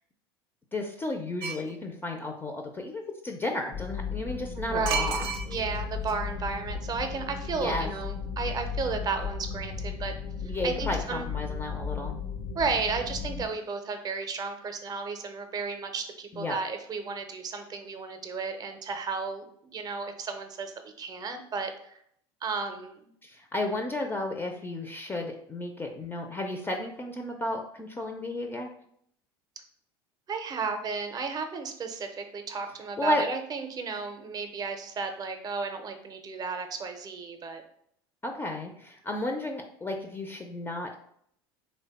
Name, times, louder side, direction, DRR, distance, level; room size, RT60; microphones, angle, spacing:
voice 1, 0.7-5.2 7.5-7.9 10.4-12.2 16.3-16.6 23.2-28.7 33.0-33.2 38.2-41.0, left 1 dB, 15° left, 3 dB, 0.4 m, -33 dB
sound 1, 1.4-1.7 4.9-5.8 6.1-6.2, right 6 dB, 80° right, 0.4 m, -31 dB
sound 2, 3.7-13.4, left 6 dB, 65° left, 0.7 m, -35 dB
voice 2, 4.6-10.1 10.4-11.3 12.5-22.0 22.4-23.0 30.3-37.6, right 4 dB, 30° right, 6 dB, 0.6 m, -33 dB
3.2 x 2.2 x 4.0 m, 0.67 s
hypercardioid pair, 80°, 13 cm